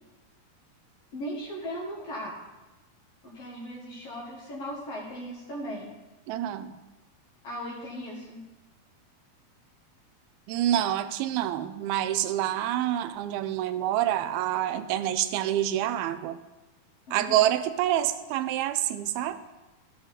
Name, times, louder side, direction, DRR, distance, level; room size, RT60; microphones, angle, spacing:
voice 1, 1.1-2.4 3.2-5.9 7.4-8.4 17.1-17.4, equal, 55° left, -4 dB, 1.8 m, -37 dB
voice 2, 6.3-6.8 10.5-16.4 17.1-19.4, right 12 dB, 85° right, 12 dB, 2.4 m, -27 dB
12.5 x 6.7 x 4.0 m, 1.1 s
omnidirectional pair, 4.3 m